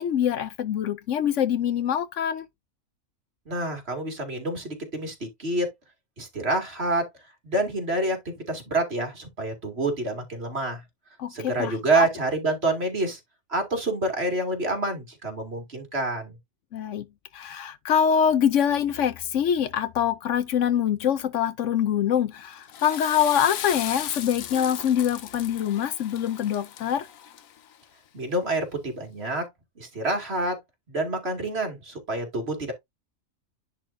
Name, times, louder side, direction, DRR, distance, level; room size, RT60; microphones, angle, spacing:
voice 1, 0.0-2.5 11.2-12.0 16.7-17.1 17.3-27.1, left 9 dB, 70° left, 1.0 m, -24 dB
voice 2, 3.5-5.7 6.2-7.1 7.4-10.8 11.3-13.2 13.5-16.4 28.1-29.5 29.8-30.6 30.9-32.7, right 2 dB, 50° right, 2.5 m, -27 dB
Water / Toilet flush, 22.5-27.8, left 10 dB, 85° left, 1.2 m, -37 dB
10.5 x 4.2 x 2.6 m
omnidirectional pair, 1.4 m